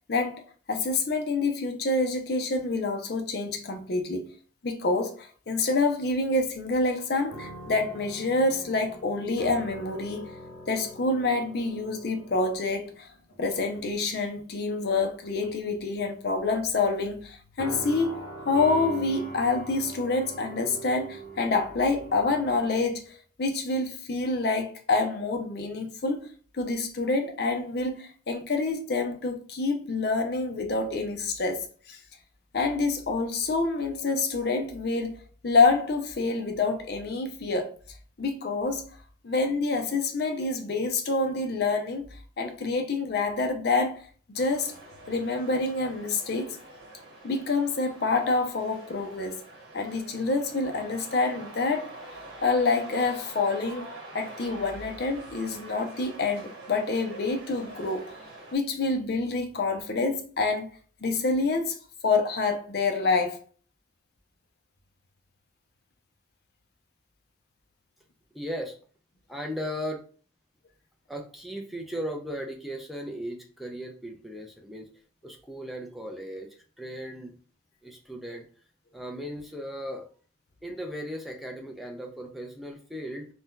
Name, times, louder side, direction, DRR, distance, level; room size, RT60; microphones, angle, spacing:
voice 1, 0.1-0.4 0.7-4.3 4.6-10.3 10.7-13.1 13.4-26.3 26.5-32.0 32.5-35.1 35.4-37.7 38.2-38.9 39.2-42.0 42.4-44.7 45.1-46.6 47.2-49.4 49.7-51.9 52.4-53.9 54.1-58.1 58.5-60.7 61.0-61.8 62.0-63.4, left 3 dB, 55° left, 0.5 m, -27 dB
sound 1, 7.3-13.4 13.7-14.0 15.0-15.7 17.6-22.8, right 1 dB, 80° left, 1.1 m, -42 dB
sound 2, 44.3-58.6, right 2 dB, 70° right, 1.2 m, -45 dB
voice 2, 68.3-68.7 69.3-70.0 71.1-74.9 75.2-77.3 77.8-78.4 78.9-80.1 80.6-83.3, equal, ahead, 0.4 m, -37 dB
2.7 x 2.2 x 3.6 m
head